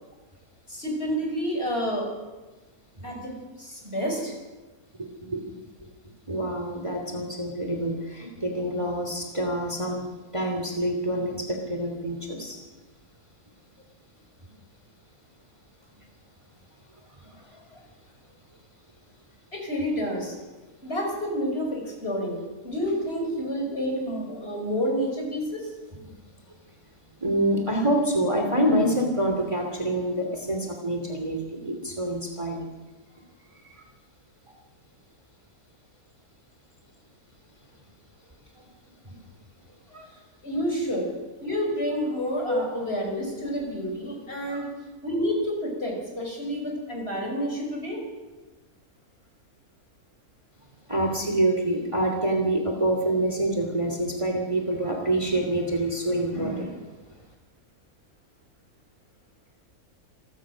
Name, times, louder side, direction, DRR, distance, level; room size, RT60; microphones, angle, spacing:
voice 1, 0.7-2.1 3.0-3.3 3.6-4.3 19.5-20.4 20.8-22.4 22.6-25.7 40.4-41.1 41.4-44.7 45.0-48.0, equal, 40° left, 1 dB, 5.7 m, -29 dB
voice 2, 5.0-5.5 5.8-5.9 6.3-10.1 10.3-12.6 17.2-17.6 26.0-26.1 27.2-32.7 33.6-33.7 38.6-38.7 39.0-39.2 39.9-40.1 42.5-42.6 44.5-44.6 50.9-56.7, right 1 dB, 20° right, 2 dB, 3.0 m, -27 dB
27.0 x 17.0 x 6.4 m, 1.2 s
omnidirectional pair, 1.6 m